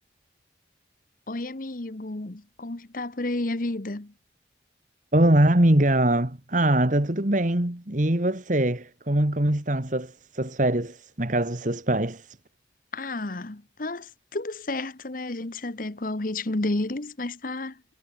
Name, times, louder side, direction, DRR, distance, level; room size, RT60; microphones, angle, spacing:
voice 1, 1.3-4.1 12.9-17.9, left 2 dB, 50° left, 1.2 m, -31 dB
voice 2, 5.1-12.4, right 1 dB, 45° right, 2.0 m, -23 dB
head